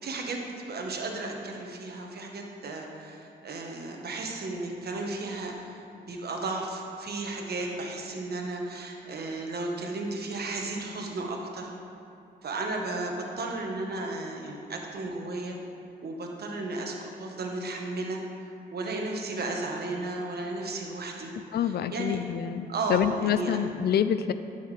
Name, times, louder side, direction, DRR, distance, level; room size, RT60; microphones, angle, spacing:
voice 1, 0.0-11.7 12.4-15.6 16.0-18.2 18.7-21.3 21.6-22.2 22.7-23.5, right 2 dB, 55° right, 1 dB, 1.2 m, -34 dB
voice 2, 21.5-24.3, left 9 dB, 60° left, 12 dB, 0.4 m, -27 dB
11.0 x 5.7 x 3.3 m, 2.6 s
cardioid pair, 65°, 19 cm